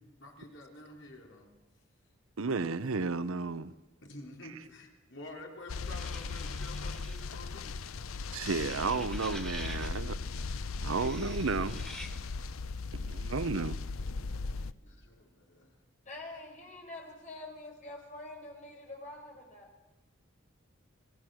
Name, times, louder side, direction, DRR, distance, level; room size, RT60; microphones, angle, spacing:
voice 1, 0.2-1.5 4.0-7.8 14.1-15.7, left 2 dB, 65° left, 3.6 m, -49 dB
voice 2, 2.4-3.7 8.3-10.2 10.8-11.8 12.9-13.7, right 4 dB, 85° right, 0.8 m, -32 dB
sound 1, 5.7-14.7, left 4 dB, 90° left, 0.7 m, -38 dB
sound 2, 5.8-7.4 8.4-10.0 10.8-12.1, equal, 5° left, 1.6 m, -47 dB
voice 3, 16.0-19.7, left 2 dB, 35° left, 4.9 m, -46 dB
27.0 x 18.0 x 6.3 m
head